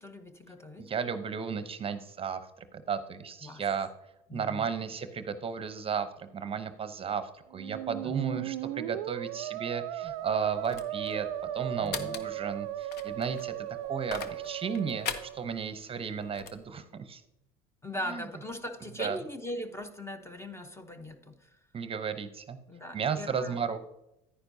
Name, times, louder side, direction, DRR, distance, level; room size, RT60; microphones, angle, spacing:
voice 1, 0.0-0.9 3.4-3.7 4.3-4.7 8.0-8.5 11.8-12.2 17.8-21.6 22.7-23.6, left 1 dB, 15° left, 9 dB, 0.8 m, -40 dB
voice 2, 0.8-3.9 4.3-11.3 11.5-17.2 18.0-18.2 19.0-19.2 21.7-22.6 22.9-23.8, right 6 dB, 30° right, 11 dB, 0.7 m, -34 dB
Musical instrument, 7.5-15.6, right 13 dB, 85° right, 0.4 m, -37 dB
sound 1, 10.1-16.6, left 7 dB, 60° left, 0.9 m, -42 dB
10.0 x 9.6 x 2.7 m, 0.89 s
supercardioid pair, 90°, 19 cm